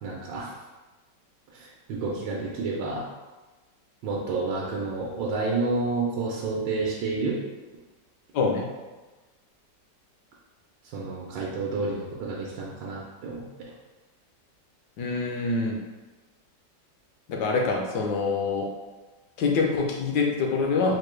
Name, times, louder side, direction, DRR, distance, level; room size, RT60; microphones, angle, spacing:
voice 1, 0.0-0.5 1.5-3.0 4.0-7.4 10.9-13.4, right 3 dB, 90° right, -4 dB, 1.3 m, -30 dB
voice 2, 8.3-8.7 15.0-15.8 17.3-18.7 19.4-21.0, left 4 dB, 75° left, 0 dB, 1.2 m, -25 dB
4.7 x 2.2 x 3.1 m, 1.2 s
omnidirectional pair, 1.9 m